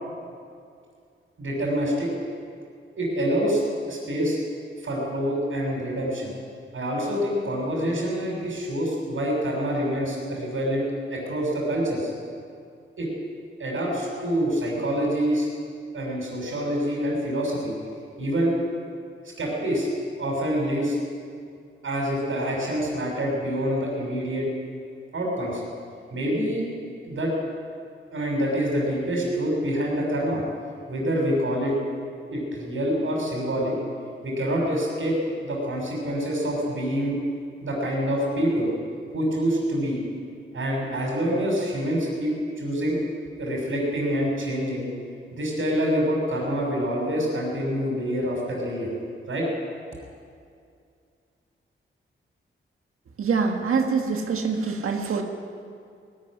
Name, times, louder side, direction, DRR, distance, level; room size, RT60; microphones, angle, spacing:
voice 1, 1.4-2.1 3.0-3.6 3.9-4.4 4.8-6.3 6.7-12.1 13.0-13.1 13.6-15.5 15.9-17.7 18.2-18.6 19.4-19.9 20.2-21.0 21.8-24.5 25.1-25.6 26.1-26.6 27.0-27.3 28.1-30.4 30.9-31.7 32.3-33.8 34.2-35.2 35.4-37.2 37.6-38.7 39.1-40.0 40.5-43.0 43.4-44.9 45.3-48.9 49.3-49.5, equal, 70° right, -3 dB, 6.3 m, -26 dB
voice 2, 53.2-55.2, right 5 dB, 90° right, 3 dB, 1.9 m, -24 dB
19.5 x 14.0 x 9.9 m, 2.3 s
wide cardioid pair, 85°, 21 cm